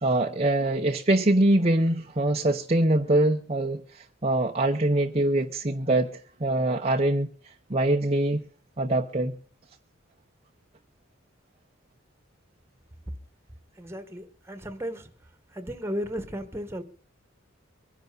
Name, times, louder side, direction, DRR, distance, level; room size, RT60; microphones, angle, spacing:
voice 1, 0.0-7.3 7.7-8.4 8.8-9.3, right 1 dB, 30° right, 0.9 m, -24 dB
voice 2, 13.8-15.1 15.5-16.8, equal, 15° right, 1.6 m, -34 dB
24.0 x 10.5 x 4.0 m
head